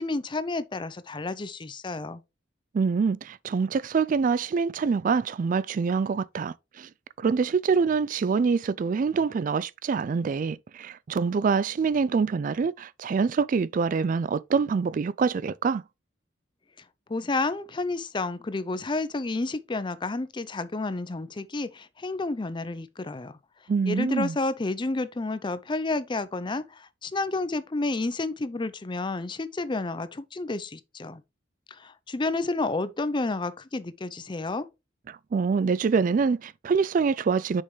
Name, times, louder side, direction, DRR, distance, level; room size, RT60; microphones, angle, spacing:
voice 1, 0.0-2.2 17.1-23.4 23.9-31.2 31.7-34.7, left 3 dB, 25° left, 0.5 m, -30 dB
voice 2, 2.7-6.9 7.2-15.8 23.7-24.3 35.1-37.6, right 5 dB, 40° right, 0.3 m, -25 dB
6.7 x 5.5 x 3.2 m
head